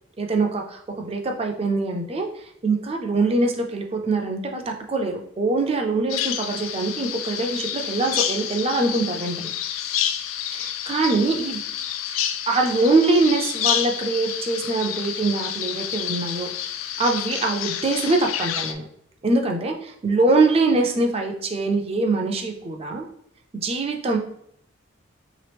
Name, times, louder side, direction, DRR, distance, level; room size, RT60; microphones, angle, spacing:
voice 1, 0.2-9.5 10.5-11.6 12.5-16.5 17.0-18.8 19.2-23.1 23.5-24.2, right 3 dB, 30° right, 3 dB, 0.4 m, -23 dB
Bird vocalization bird call bird song, 6.1-18.7, left 10 dB, 80° left, 0.3 m, -29 dB
3.3 x 2.9 x 3.3 m, 0.70 s
head